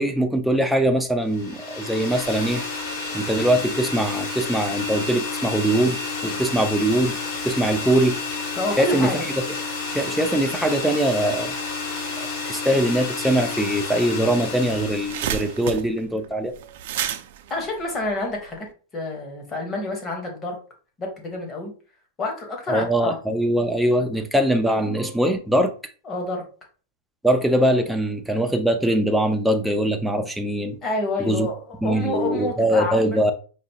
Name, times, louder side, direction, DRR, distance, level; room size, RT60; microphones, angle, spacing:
voice 1, 0.0-2.6 3.1-7.2 7.4-8.2 8.8-9.1 9.9-11.5 12.5-16.5 22.7-25.7 27.2-30.8 31.2-31.5 31.8-33.3, right 1 dB, ahead, 0.4 m, -22 dB
sound 1, 1.3-15.7, left 4 dB, 45° left, 1.8 m, -30 dB
voice 2, 8.6-9.3 17.5-18.7 18.9-20.6 21.0-21.7 22.2-23.2 26.0-26.4 30.8-33.2, left 2 dB, 20° left, 1.1 m, -28 dB
sound 2, 14.4-18.7, right 10 dB, 60° right, 0.4 m, -31 dB
5.0 x 2.6 x 2.8 m
supercardioid pair, 155°, 0 cm